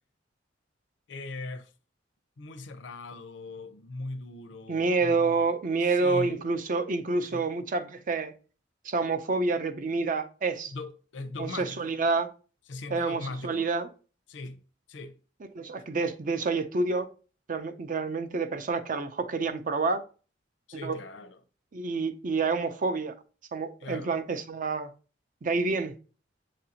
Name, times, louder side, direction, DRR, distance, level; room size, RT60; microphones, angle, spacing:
voice 1, 1.1-1.7 2.4-5.6 5.9-6.4 7.3-7.4 10.7-12.0 12.7-13.7 14.3-14.6 14.9-15.2 20.7-21.4 23.8-24.1, left 2 dB, 75° left, 0.6 m, -40 dB
voice 2, 4.7-8.3 8.8-10.7 11.4-12.3 12.9-13.9 15.5-17.1 17.5-20.0 20.8-21.0 21.7-23.1 23.5-24.9 25.4-25.9, right 3 dB, 45° right, 0.5 m, -28 dB
7.4 x 2.6 x 2.8 m
head